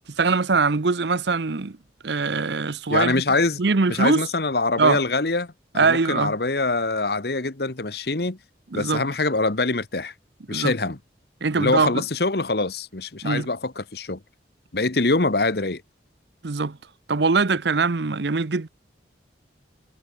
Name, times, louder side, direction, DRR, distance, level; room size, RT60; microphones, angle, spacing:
voice 1, 0.2-1.8 2.0-3.2 3.6-4.2 4.8-5.0 5.7-6.3 8.7-9.0 10.5-10.7 11.4-12.0 13.2-13.5 16.4-16.8 17.1-18.7, right 4 dB, 70° right, 0.8 m, -22 dB
voice 2, 2.9-3.6 3.9-8.4 8.7-10.1 10.5-11.0 11.5-14.2 14.7-15.8, left 3 dB, 60° left, 1.3 m, -24 dB
head